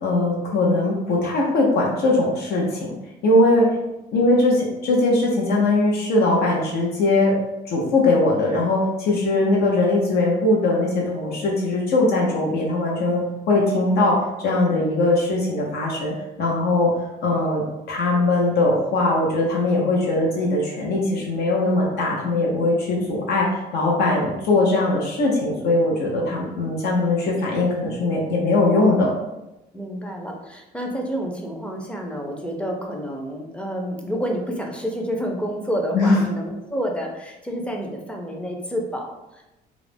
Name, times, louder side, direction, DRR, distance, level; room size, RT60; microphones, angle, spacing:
voice 1, 0.0-2.9 3.2-3.7 4.1-7.4 7.7-14.2 14.4-16.1 16.4-16.9 17.2-17.6 17.9-29.1 35.9-36.2, left 2 dB, 70° left, -2 dB, 0.6 m, -20 dB
voice 2, 22.9-23.3 29.7-39.5, equal, 5° left, 0 dB, 0.5 m, -29 dB
2.4 x 2.0 x 3.3 m, 0.96 s
cardioid pair, 110°, 17 cm